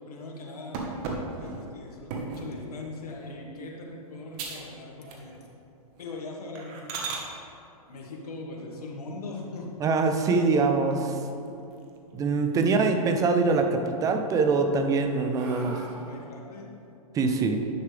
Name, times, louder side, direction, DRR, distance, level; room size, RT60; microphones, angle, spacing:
voice 1, 0.1-0.8 1.4-5.4 6.0-7.3 7.9-9.8 10.3-10.6 10.8-11.0 12.5-12.8 15.1-16.6, left 2 dB, 80° left, -1 dB, 1.7 m, -40 dB
sound 1, 0.7-2.5 3.1-3.4 3.8-3.9 4.3-4.7 5.0-5.6 5.9-6.0 6.6-7.3 9.3-9.9 10.4-10.5 10.9-11.0 11.3-12.1 12.4-13.0 13.4-14.1 14.6-16.3, right 4 dB, 40° right, 1.3 m, -38 dB
voice 2, 9.8-11.1 12.1-15.8 17.1-17.6, right 4 dB, 20° right, 6 dB, 0.6 m, -24 dB
10.5 x 6.5 x 3.4 m, 2.6 s
hypercardioid pair, 135°, 19 cm